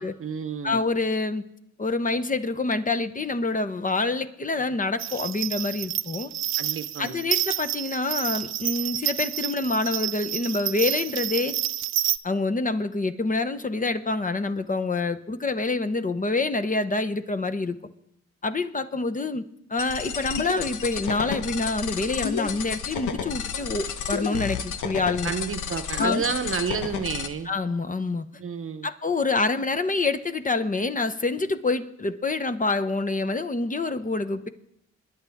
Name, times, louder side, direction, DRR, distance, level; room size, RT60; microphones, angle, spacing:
voice 1, 0.0-0.8 6.6-7.3 25.2-27.5 28.4-28.9, right 6 dB, 45° right, 11 dB, 0.8 m, -30 dB
voice 2, 0.6-1.4 1.8-6.3 7.0-11.6 12.2-17.8 18.4-19.4 19.7-25.3 26.0-26.2 27.5-28.2 28.8-34.5, left 3 dB, 25° left, 10 dB, 0.8 m, -26 dB
sound 1, 5.0-12.2, right 12 dB, 65° right, 0.5 m, -29 dB
sound 2, 19.8-27.3, left 7 dB, 90° left, 0.9 m, -31 dB
22.5 x 10.0 x 3.5 m, 0.79 s
cardioid pair, 70°, 30 cm